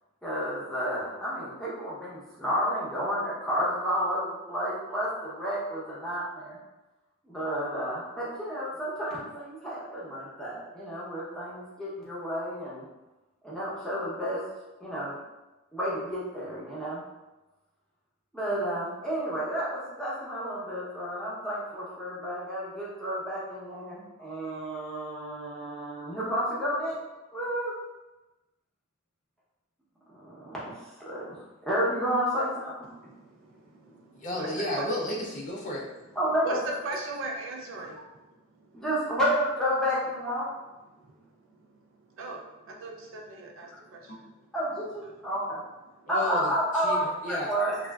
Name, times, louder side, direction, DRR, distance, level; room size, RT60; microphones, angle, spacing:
voice 1, 0.2-6.6 7.2-12.8 13.4-14.4 14.8-15.2 15.7-17.0 18.3-27.0 27.3-27.7 30.2-31.4 31.6-32.7 36.2-36.5 38.7-40.5 44.5-45.6 46.1-47.8, equal, 5° left, -8 dB, 0.8 m, -31 dB
voice 2, 32.9-34.9 36.4-38.8 41.0-41.7 42.2-44.3 46.2-46.5, right 2 dB, 70° right, 0 dB, 0.5 m, -39 dB
voice 3, 34.2-35.9 44.1-44.2 46.1-47.5, left 1 dB, 35° left, -2 dB, 0.4 m, -33 dB
3.2 x 2.4 x 2.3 m, 1.1 s
head